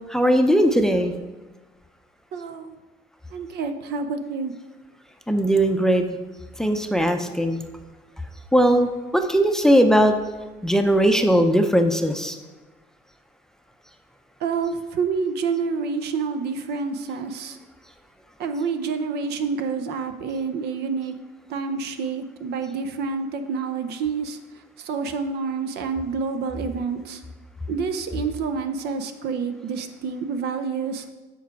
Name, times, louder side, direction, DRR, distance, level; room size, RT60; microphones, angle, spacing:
voice 1, 0.1-1.1 5.3-6.1 6.6-7.6 8.5-10.1 10.6-12.3, equal, 5° left, 6 dB, 0.5 m, -19 dB
voice 2, 2.3-2.7 3.3-4.5 14.4-17.6 18.4-21.1 21.5-24.4 24.8-27.2 27.7-31.0, right 5 dB, 75° right, 8 dB, 0.7 m, -28 dB
7.2 x 4.7 x 4.6 m, 1.2 s
cardioid pair, 110°, 17 cm